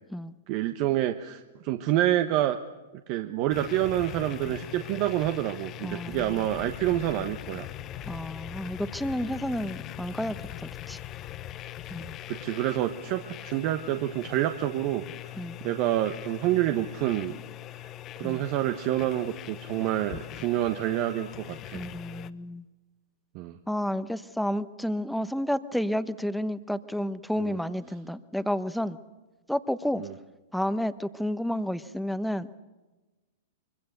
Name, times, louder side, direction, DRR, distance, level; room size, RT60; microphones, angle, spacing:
voice 1, 0.5-2.6 3.1-7.7 12.3-15.0 15.6-17.4 18.2-21.8 23.3-23.6 27.4-27.6 30.0-30.1, right 13 dB, 45° right, 8 dB, 1.2 m, -28 dB
sound 1, 3.5-22.3, left 13 dB, 35° left, 1.1 m, -41 dB
voice 2, 5.8-6.4 8.0-11.0 11.9-12.1 15.4-15.6 18.2-18.4 21.7-22.6 23.7-29.0 29.5-30.0 30.5-32.5, equal, ahead, 13 dB, 1.1 m, -31 dB
24.5 x 24.5 x 6.8 m, 1.2 s
hypercardioid pair, 110°, 0 cm